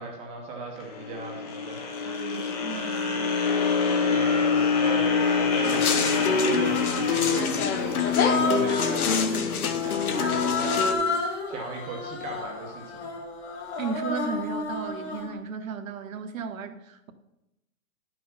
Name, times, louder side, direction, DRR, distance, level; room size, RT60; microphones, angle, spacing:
voice 1, 0.0-2.4 3.6-13.0, right 4 dB, 15° right, 0.8 m, -38 dB
sound 1, 0.8-9.0, left 5 dB, 25° left, 0.8 m, -26 dB
voice 2, 2.1-3.4 13.8-17.1, right 5 dB, 60° right, 1.0 m, -35 dB
Human voice, 3.6-3.7 4.7-5.6 6.2-7.3 8.0-9.2 10.1-15.3, left 3 dB, 45° left, 2.3 m, -32 dB
sound 2, 5.6-10.9, left 6 dB, 70° left, 1.1 m, -25 dB
10.5 x 6.0 x 5.5 m
hypercardioid pair, 155°, 46 cm